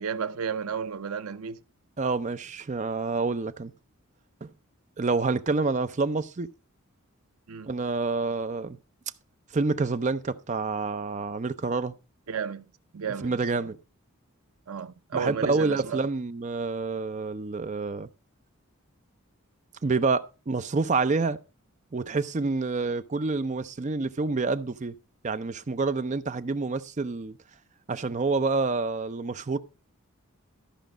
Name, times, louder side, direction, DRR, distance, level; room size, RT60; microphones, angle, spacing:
voice 1, 0.0-1.6 7.5-7.7 12.3-12.6 12.9-13.7 14.7-16.0, right 6 dB, 85° right, 0.6 m, -33 dB
voice 2, 2.0-3.7 4.4-4.5 5.0-6.5 7.7-8.8 9.5-11.9 13.2-13.8 15.1-18.1 19.8-21.4 21.9-24.9 25.2-27.4 27.9-29.6, right 3 dB, 35° right, 0.5 m, -28 dB
13.5 x 5.1 x 5.0 m
head